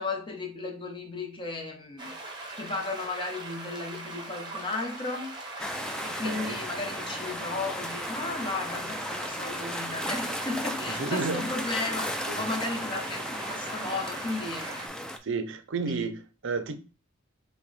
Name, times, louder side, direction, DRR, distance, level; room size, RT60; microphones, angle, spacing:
voice 1, 0.0-2.2 2.6-5.4 6.0-14.9, left 3 dB, 25° left, 0.9 m, -34 dB
sound 1, 2.0-14.9, right 2 dB, 20° right, 1.0 m, -40 dB
sound 2, 5.6-15.2, equal, 5° left, 0.4 m, -35 dB
voice 2, 6.0-6.6 10.9-11.5 12.3-12.5 15.2-16.8, right 4 dB, 60° right, 0.6 m, -32 dB
5.5 x 2.2 x 4.0 m
head